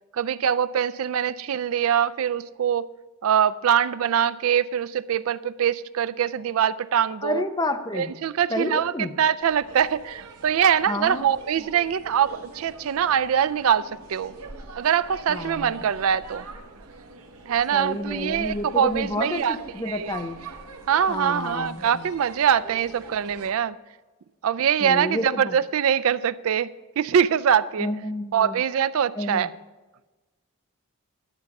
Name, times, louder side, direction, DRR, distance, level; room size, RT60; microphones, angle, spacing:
voice 1, 0.1-2.9 3.2-7.4 7.9-14.3 14.8-16.5 17.5-20.2 20.9-23.8 24.4-27.9 28.3-29.5, right 8 dB, 65° right, 17 dB, 0.4 m, -23 dB
voice 2, 7.2-8.1 8.5-9.1 10.9-11.3 15.3-15.7 17.7-20.4 21.1-22.1 24.8-25.6 27.8-28.6 29.2-29.5, left 1 dB, 20° left, 7 dB, 0.5 m, -30 dB
sound 1, 9.4-23.5, right 3 dB, 85° right, 1.0 m, -43 dB
12.0 x 7.2 x 5.3 m, 1.2 s
head